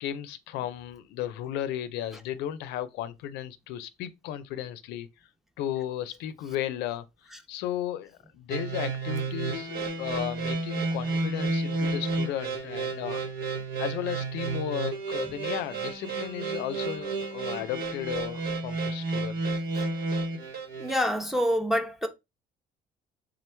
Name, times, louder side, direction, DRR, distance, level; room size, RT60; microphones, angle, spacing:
voice 1, 0.0-5.1 5.6-7.1 7.5-13.2 13.8-19.4, left 11 dB, 90° left, 0.4 m, -34 dB
sound 1, 8.5-21.0, right 3 dB, 70° right, 1.0 m, -31 dB
voice 2, 20.8-22.1, equal, ahead, 0.6 m, -26 dB
3.7 x 3.0 x 3.3 m
cardioid pair, 110°, 17 cm